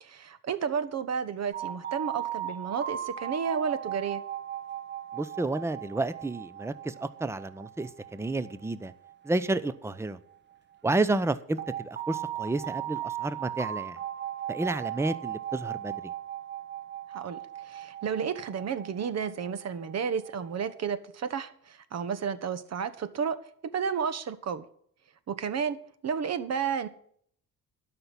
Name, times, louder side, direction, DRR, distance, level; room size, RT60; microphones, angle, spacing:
voice 1, 0.0-4.2 17.1-23.4 23.6-24.6 25.3-26.9, right 6 dB, 50° right, 1.3 m, -32 dB
sound 1, 1.5-10.3 11.6-20.7, right 11 dB, 30° right, 1.6 m, -38 dB
voice 2, 5.1-8.9 9.2-10.2 10.8-14.0 14.5-15.9, right 2 dB, 10° right, 0.7 m, -30 dB
12.5 x 5.9 x 8.4 m
cardioid pair, 90°, 34 cm